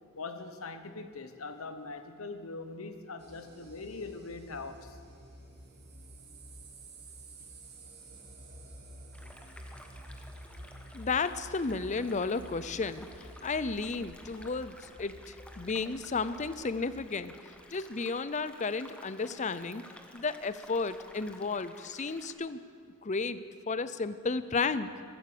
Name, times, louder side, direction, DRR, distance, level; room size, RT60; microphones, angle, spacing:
voice 1, 0.1-5.0, left 3 dB, 75° left, 9 dB, 1.2 m, -42 dB
sound 1, 3.2-17.0, right 1 dB, 50° right, 2.8 m, -50 dB
sound 2, 9.1-22.3, left 1 dB, 5° left, 1.0 m, -53 dB
voice 2, 10.9-17.3 17.7-19.8 20.1-22.6 23.0-23.4 23.7-24.9, left 4 dB, 35° left, 14 dB, 0.5 m, -33 dB
15.0 x 14.0 x 6.8 m, 2.2 s
head